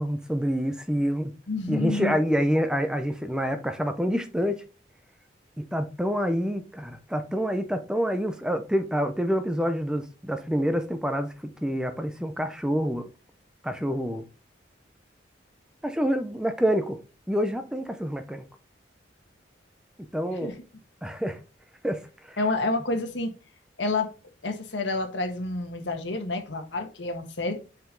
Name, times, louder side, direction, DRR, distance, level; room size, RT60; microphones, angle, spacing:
voice 1, 0.0-1.3 1.7-4.6 5.6-13.0 13.6-14.3 15.8-17.0 17.3-18.4 20.1-20.5 21.0-21.4 21.8-22.4, equal, 5° right, 0.6 m, -27 dB
voice 2, 1.5-2.2 20.4-20.6 22.4-23.3 23.8-24.1 24.4-27.6, left 2 dB, 75° left, 1.4 m, -29 dB
5.6 x 5.1 x 3.8 m
head